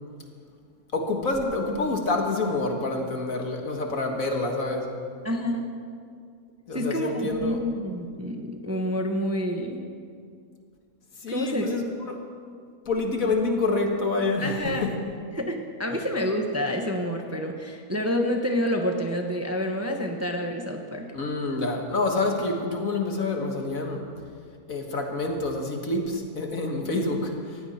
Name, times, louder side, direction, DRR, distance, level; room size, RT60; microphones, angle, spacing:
voice 1, 0.9-4.9 6.7-7.6 11.2-12.2 12.9-14.9 21.1-24.1 24.7-27.6, left 2 dB, 65° left, 2 dB, 2.0 m, -27 dB
voice 2, 5.2-5.6 6.7-9.8 11.3-11.7 14.4-14.8 15.3-21.0 27.1-27.2, equal, 10° right, 3 dB, 0.9 m, -28 dB
19.0 x 15.5 x 4.4 m, 2.2 s
omnidirectional pair, 1.6 m